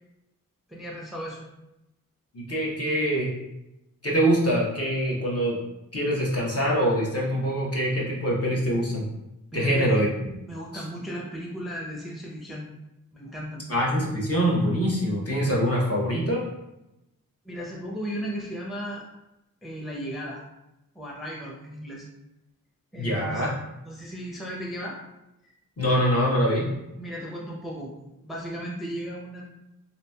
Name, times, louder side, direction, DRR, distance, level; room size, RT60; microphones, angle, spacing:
voice 1, 0.7-1.5 9.5-10.0 10.4-12.6 13.1-13.7 17.4-19.0 19.6-20.4 20.9-22.1 22.9-23.4 23.8-25.0 25.4-25.5 27.0-27.9 28.2-29.4, equal, ahead, -3 dB, 0.5 m, -35 dB
voice 2, 2.3-3.3 4.0-5.6 5.9-9.1 9.5-10.1 10.7-10.8 13.7-16.4 23.0-23.5 25.8-26.7, equal, 45° left, -4 dB, 0.9 m, -24 dB
2.9 x 2.6 x 2.2 m, 0.91 s
cardioid pair, 45°, 35 cm